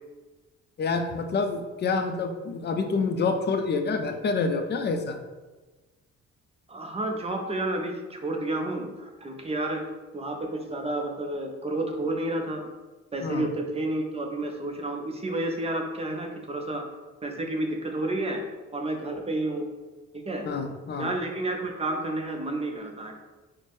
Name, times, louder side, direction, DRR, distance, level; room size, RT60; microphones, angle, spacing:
voice 1, 0.8-5.2 13.2-13.5 20.4-21.1, left 4 dB, 35° left, 6 dB, 0.4 m, -27 dB
voice 2, 6.7-9.9 10.1-12.6 13.1-16.9 17.2-18.5 18.7-19.7 20.1-20.5 21.0-23.1, right 2 dB, 20° right, 3 dB, 0.5 m, -30 dB
4.2 x 2.1 x 3.1 m, 1.2 s
cardioid pair, 90°, 30 cm